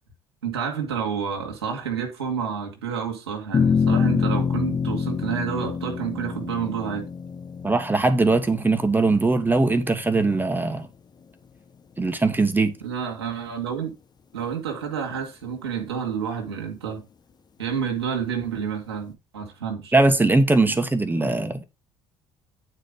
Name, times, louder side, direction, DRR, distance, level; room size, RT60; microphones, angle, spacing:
voice 1, 0.4-7.1 12.8-13.9 14.3-17.0 17.6-19.9, right 7 dB, 85° right, 1.6 m, -29 dB
sound 1, 3.5-10.1, left 6 dB, 30° left, 0.9 m, -26 dB
voice 2, 7.6-10.9 12.0-12.7 19.9-21.6, right 3 dB, 15° right, 1.5 m, -20 dB
9.1 x 4.3 x 4.9 m
hypercardioid pair, 55°, 13 cm